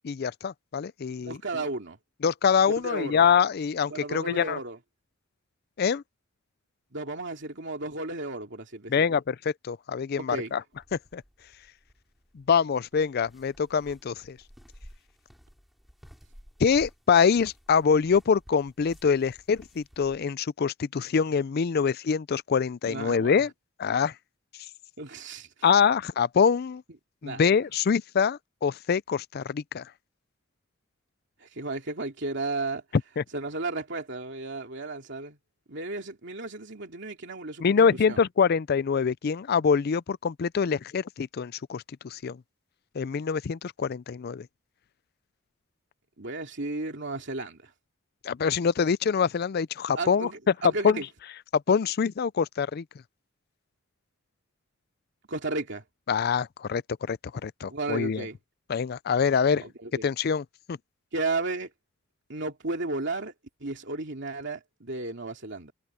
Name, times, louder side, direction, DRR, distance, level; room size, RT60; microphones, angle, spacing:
voice 1, 0.0-1.4 2.2-4.6 5.8-6.0 8.9-10.6 10.9-11.2 12.3-14.4 16.6-23.5 23.8-24.1 25.6-26.8 27.2-29.9 33.2-33.3 37.6-42.4 42.9-44.5 48.2-50.5 50.8-51.0 51.5-52.8 56.1-58.3 58.7-59.7 60.0-60.8, left 6 dB, 50° left, 0.4 m, -25 dB
voice 2, 1.2-2.0 2.8-3.3 3.9-4.8 6.9-9.0 10.2-10.5 22.9-23.4 25.0-25.5 27.2-27.4 31.4-32.8 33.3-35.4 35.7-37.8 38.1-38.2 46.2-47.7 49.9-51.0 55.3-55.8 57.7-58.4 59.6-60.1 61.1-61.7 62.3-63.3 63.6-65.7, right 2 dB, 60° right, 2.7 m, -34 dB
sound 1, 10.7-20.2, equal, ahead, 5.4 m, -54 dB
head